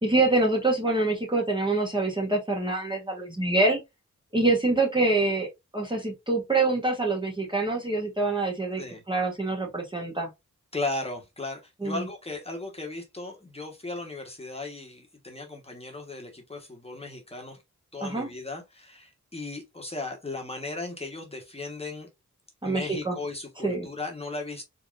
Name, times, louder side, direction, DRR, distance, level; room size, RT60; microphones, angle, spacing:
voice 1, 0.0-3.8 4.3-5.5 5.7-8.8 9.1-10.3 11.8-12.0 18.0-18.3 22.6-23.2 23.6-23.9, right 2 dB, 15° right, 1.1 m, -25 dB
voice 2, 10.7-17.6 17.9-22.1 22.6-24.6, left 2 dB, 20° left, 1.2 m, -36 dB
4.0 x 3.6 x 2.5 m
wide cardioid pair, 115°, 30 cm